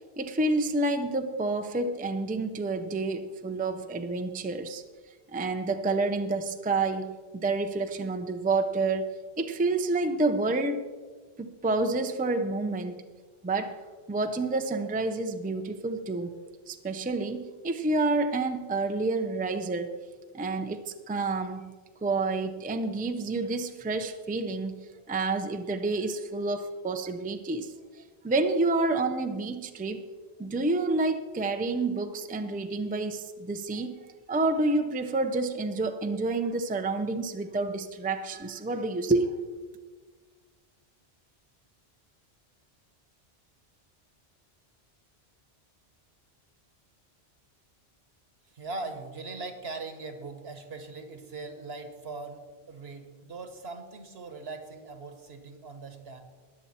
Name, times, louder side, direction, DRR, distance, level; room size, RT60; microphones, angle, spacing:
voice 1, 0.2-4.8 5.3-10.8 11.4-13.0 13.4-13.8 14.1-16.3 16.7-20.0 20.3-21.7 22.0-30.0 30.4-34.0 34.3-39.3, right 3 dB, 10° right, 8 dB, 0.4 m, -29 dB
voice 2, 48.5-52.4 52.7-56.2, right 3 dB, 70° right, 7 dB, 1.5 m, -40 dB
20.0 x 7.1 x 4.3 m, 1.4 s
omnidirectional pair, 1.1 m